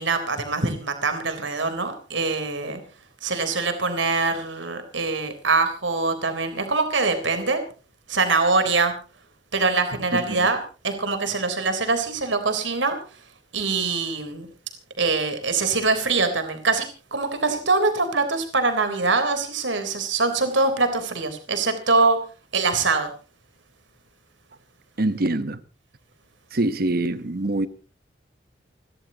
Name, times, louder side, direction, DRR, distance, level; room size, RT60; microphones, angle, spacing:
voice 1, 0.0-2.8 3.2-7.6 8.1-8.9 9.5-13.0 13.5-14.5 15.0-22.2 22.5-23.1, right 3 dB, 90° right, 3.6 m, -23 dB
voice 2, 10.1-10.5 25.0-25.6 26.5-27.7, right 2 dB, 55° right, 1.0 m, -24 dB
28.5 x 13.0 x 2.9 m
head